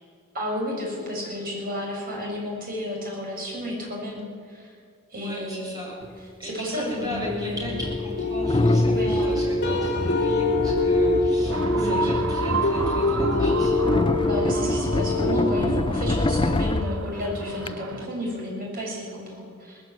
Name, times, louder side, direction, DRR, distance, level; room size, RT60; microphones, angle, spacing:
voice 1, 0.3-4.7 5.1-5.8 6.2-7.8 8.9-9.2 11.7-12.1 13.8-14.0 14.2-19.8, left 1 dB, 45° right, -2 dB, 7.2 m, -32 dB
voice 2, 5.2-5.9 6.4-13.8, equal, 20° right, -3 dB, 7.7 m, -37 dB
sound 1, 6.0-6.1 7.1-17.7, left 2 dB, 25° left, 0.5 m, -27 dB
sound 2, 7.6-15.5, left 2 dB, 55° left, 4.5 m, -25 dB
sound 3, 11.5-18.1, right 4 dB, 75° right, 1.1 m, -33 dB
19.5 x 15.0 x 9.7 m, 2.2 s
head